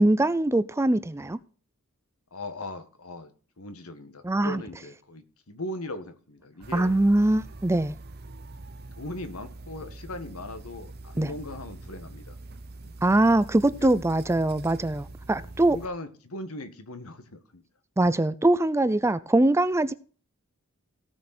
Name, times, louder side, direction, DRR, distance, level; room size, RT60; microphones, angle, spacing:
voice 1, 0.0-1.4 4.2-4.6 6.7-7.9 11.2-11.3 13.0-15.8 18.0-19.9, right 1 dB, 10° right, 0.4 m, -22 dB
voice 2, 2.3-7.0 9.0-12.4 12.8-12.9 13.8-13.9 14.6-14.7 15.6-17.6, left 1 dB, 75° left, 1.6 m, -39 dB
sound 1, 6.6-15.9, right 2 dB, 45° right, 1.0 m, -44 dB
17.5 x 6.5 x 4.3 m
head